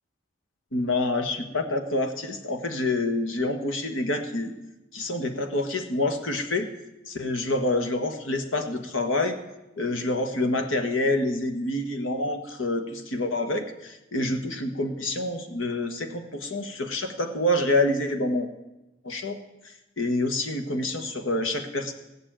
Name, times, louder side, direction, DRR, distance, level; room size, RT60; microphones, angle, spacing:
voice 1, 0.7-4.5 4.9-6.7 7.1-9.4 9.8-18.5 19.0-19.4 20.0-21.9, left 2 dB, 85° left, 7 dB, 1.5 m, -27 dB
15.5 x 7.0 x 8.9 m, 0.97 s
head